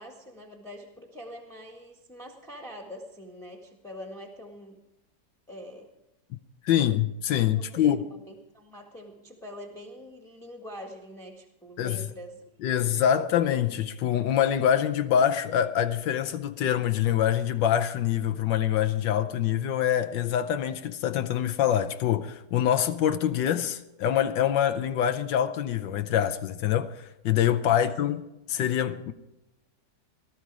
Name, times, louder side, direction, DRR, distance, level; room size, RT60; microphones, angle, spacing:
voice 1, 0.0-4.8 5.5-5.9 7.6-12.7 27.7-27.9, equal, ahead, 1.6 m, -44 dB
voice 2, 6.6-8.0 11.8-12.0 12.6-28.2 28.5-29.1, left 10 dB, 85° left, 1.5 m, -25 dB
18.5 x 13.0 x 4.8 m
omnidirectional pair, 1.9 m